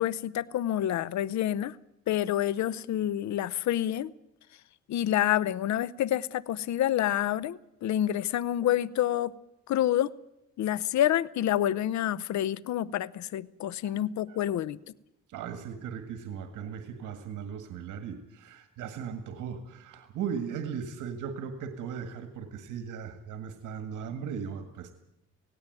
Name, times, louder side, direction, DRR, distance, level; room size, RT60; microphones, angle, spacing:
voice 1, 0.0-1.8 2.1-4.1 4.9-9.3 9.7-10.1 10.6-14.8, left 12 dB, 65° left, 20 dB, 0.7 m, -28 dB
voice 2, 15.3-24.9, right 7 dB, 85° right, 7 dB, 1.8 m, -37 dB
17.5 x 17.0 x 9.1 m, 0.86 s
cardioid pair, 90°, 30 cm